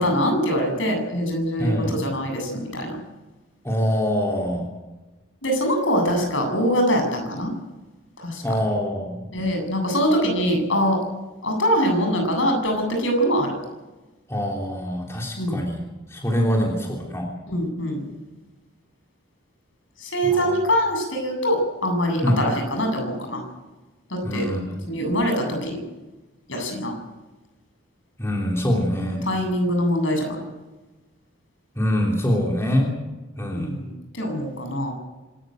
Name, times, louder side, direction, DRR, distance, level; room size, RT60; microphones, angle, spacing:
voice 1, 0.0-3.0 5.4-7.5 8.2-8.4 9.3-11.0 11.4-13.5 15.4-15.6 17.5-18.1 20.0-23.4 24.1-24.5 24.9-25.8 26.5-26.9 29.3-30.4 33.5-34.9, equal, 70° left, 3 dB, 8.0 m, -23 dB
voice 2, 1.6-2.0 3.6-4.7 8.4-9.2 14.3-17.3 20.2-20.6 22.2-22.4 24.2-24.9 28.2-29.2 31.7-33.0 33.4-33.7, equal, 15° left, -1 dB, 3.3 m, -24 dB
26.0 x 13.5 x 9.2 m, 1.1 s
head